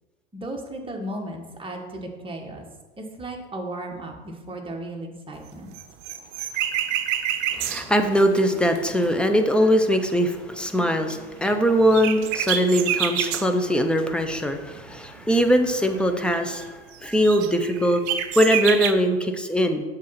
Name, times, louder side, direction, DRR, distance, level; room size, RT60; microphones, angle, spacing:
voice 1, 0.3-2.7 3.0-5.7, right 1 dB, 15° right, 1 dB, 1.5 m, -35 dB
sound 1, 5.5-9.3 11.1-11.2 11.5-11.6 11.9-13.5 14.1-15.9 16.1-16.4 16.6-16.7 16.9-18.9, right 10 dB, 60° right, 0.7 m, -28 dB
voice 2, 7.5-18.0 18.4-19.8, equal, 5° left, 6 dB, 0.7 m, -21 dB
7.3 x 3.9 x 5.8 m, 1.3 s
hypercardioid pair, 90°, 32 cm